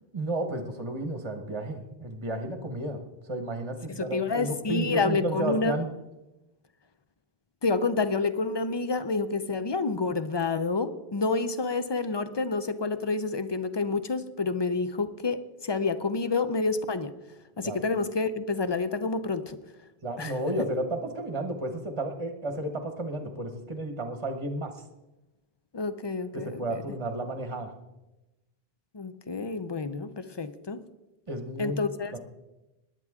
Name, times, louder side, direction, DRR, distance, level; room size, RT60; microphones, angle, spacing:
voice 1, 0.1-3.0 3.3-5.9 17.6-17.8 20.0-24.8 26.3-27.7 31.3-31.8 32.1-32.2, right 1 dB, 30° right, 6 dB, 1.1 m, -32 dB
voice 2, 3.9-5.8 7.6-17.1 17.6-19.6 20.2-20.4 25.7-26.8 28.9-30.8 31.6-32.1, left 3 dB, 35° left, 12 dB, 0.5 m, -29 dB
19.0 x 10.5 x 3.6 m, 1.0 s
omnidirectional pair, 1.1 m